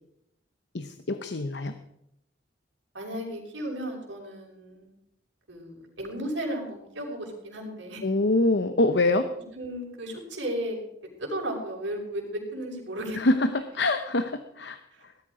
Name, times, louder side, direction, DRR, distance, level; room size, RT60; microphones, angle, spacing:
voice 1, 0.7-1.8 8.0-9.3 13.1-15.1, left 2 dB, 65° left, 9 dB, 0.9 m, -25 dB
voice 2, 2.9-4.9 5.5-8.0 9.5-10.8 11.2-13.2 14.9-15.0, right 1 dB, 85° right, 0 dB, 5.7 m, -34 dB
18.5 x 12.5 x 5.0 m, 0.80 s
head